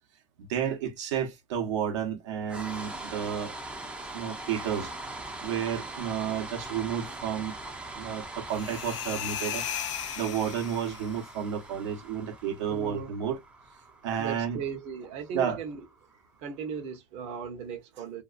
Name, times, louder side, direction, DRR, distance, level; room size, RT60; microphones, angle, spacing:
voice 1, 0.4-3.6 4.1-4.9 5.4-7.5 7.9-13.4 14.0-14.6 15.3-15.6, right 8 dB, 75° right, 1.0 m, -31 dB
sound 1, 2.5-16.6, right 2 dB, 5° right, 0.5 m, -42 dB
sound 2, 8.5-11.2, left 10 dB, 75° left, 0.6 m, -36 dB
voice 2, 12.7-13.1 14.2-15.8 16.4-18.2, right 6 dB, 45° right, 0.9 m, -37 dB
2.6 x 2.3 x 2.4 m
supercardioid pair, 130°, 15 cm